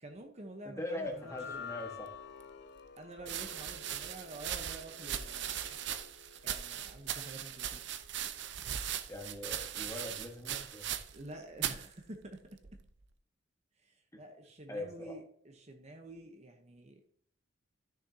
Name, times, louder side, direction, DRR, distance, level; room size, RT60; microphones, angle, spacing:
voice 1, 0.0-1.6 3.0-5.8 6.4-7.8 11.1-12.4 13.8-17.0, right 1 dB, 35° right, 4 dB, 0.9 m, -49 dB
voice 2, 0.8-2.1 9.1-10.8 14.7-15.1, left 1 dB, 15° left, 2 dB, 1.5 m, -41 dB
sound 1, 1.1-7.5, left 6 dB, 55° left, 0.7 m, -50 dB
sound 2, 2.1-2.2 3.2-11.3 11.6-11.9 12.6-13.0, right 10 dB, 60° right, 0.6 m, -39 dB
13.5 x 6.4 x 2.8 m, 0.65 s
head